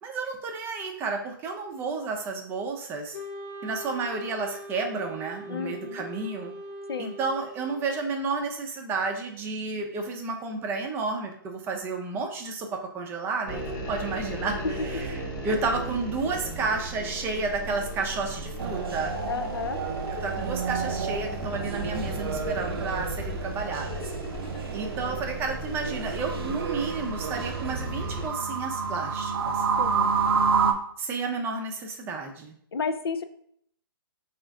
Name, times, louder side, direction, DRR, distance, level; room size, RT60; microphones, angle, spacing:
voice 1, 0.0-3.2 3.6-6.5 7.0-13.6 13.9-19.3 20.2-24.1 24.7-29.7 31.0-32.6, right 4 dB, 20° right, 2 dB, 0.5 m, -31 dB
Wind instrument woodwind instrument, 3.1-8.2, equal, 55° left, 1.0 m, -41 dB
voice 2, 5.5-6.0 6.9-7.1 14.6-14.9 15.1-15.2 19.2-19.8 29.8-30.1 32.7-33.2, left 5 dB, 85° left, 9 dB, 0.4 m, -32 dB
sound 1, 13.5-28.3, right 1 dB, 15° left, 0.9 m, -36 dB
sound 2, 18.6-30.7, right 5 dB, 80° right, 0.5 m, -30 dB
3.9 x 2.4 x 3.5 m, 0.66 s
hypercardioid pair, 135°, 12 cm